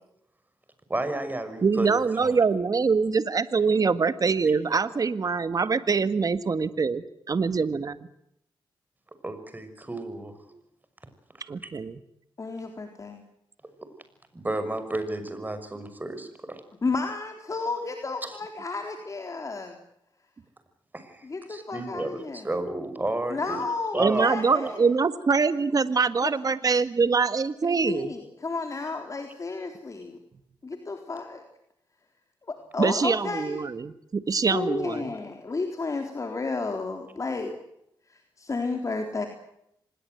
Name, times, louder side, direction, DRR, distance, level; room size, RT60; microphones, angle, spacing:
voice 1, 0.9-2.4 9.2-10.4 11.4-11.5 13.8-13.9 14.3-16.6 18.2-18.4 20.9-23.6 23.9-24.3 24.6-24.7, right 2 dB, 20° right, 10 dB, 6.1 m, -32 dB
voice 2, 1.6-8.0 11.5-12.0 24.0-28.1 32.8-35.1, right 5 dB, 45° right, 12 dB, 1.8 m, -24 dB
voice 3, 12.4-13.2 16.8-19.8 21.2-22.5 23.3-24.9 26.2-26.3 27.9-30.2 30.6-31.4 32.4-33.6 34.3-37.5 38.1-39.3, left 3 dB, 40° left, 4 dB, 3.8 m, -32 dB
25.5 x 20.5 x 8.0 m, 0.76 s
cardioid pair, 70°, 9 cm